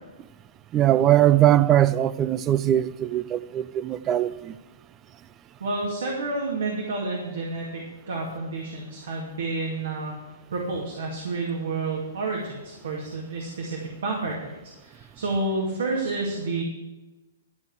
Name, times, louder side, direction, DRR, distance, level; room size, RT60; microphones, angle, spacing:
voice 1, 0.7-4.5, right 12 dB, 25° right, 0.4 m, -21 dB
voice 2, 5.6-10.2 10.5-14.5 14.8-16.6, right 3 dB, 70° right, 2.2 m, -30 dB
12.0 x 5.4 x 7.9 m
hypercardioid pair, 125°, 0 cm